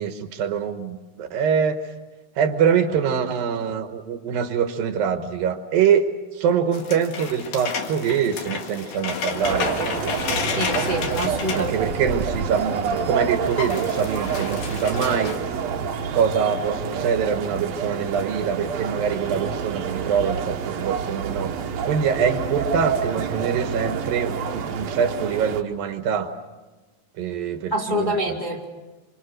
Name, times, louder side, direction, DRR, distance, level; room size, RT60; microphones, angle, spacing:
voice 1, 0.0-1.8 2.4-9.7 11.5-15.4 16.1-21.5 21.9-26.3 27.2-28.4, right 7 dB, 80° right, 7 dB, 3.0 m, -24 dB
sound 1, 6.7-12.6 13.0-13.1 13.3-15.4, left 5 dB, 65° left, 3.3 m, -31 dB
sound 2, 9.4-25.6, right 6 dB, 60° right, 2.1 m, -28 dB
voice 2, 10.5-11.7 27.7-28.6, equal, 15° left, -2 dB, 2.1 m, -26 dB
27.5 x 25.5 x 6.5 m, 1.2 s
omnidirectional pair, 4.1 m